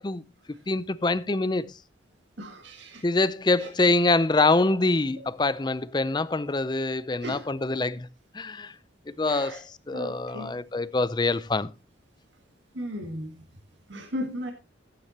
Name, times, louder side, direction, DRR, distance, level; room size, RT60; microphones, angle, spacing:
voice 1, 0.0-1.7 3.0-8.1 8.3-8.7 9.1-11.7, left 2 dB, 25° left, 0.5 m, -25 dB
voice 2, 2.4-3.1 3.6-4.0 5.2-5.3 7.2-7.5 9.2-9.6 9.9-10.6 12.7-13.4 13.9-14.5, equal, 75° right, 1.8 m, -37 dB
15.0 x 9.9 x 2.8 m
head